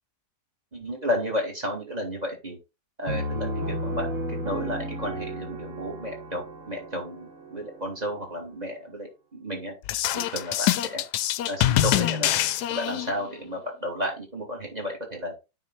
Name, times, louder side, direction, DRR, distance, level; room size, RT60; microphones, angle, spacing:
voice 1, 0.7-2.6 3.0-9.7 10.1-11.0 11.5-12.3 12.7-15.3, equal, 20° right, 3 dB, 2.9 m, -32 dB
Piano, 3.1-8.6, right 1 dB, 45° right, 1.6 m, -34 dB
sound 1, 9.8-13.3, left 13 dB, 70° left, 1.1 m, -25 dB
9.4 x 4.7 x 4.2 m, 0.27 s
omnidirectional pair, 2.0 m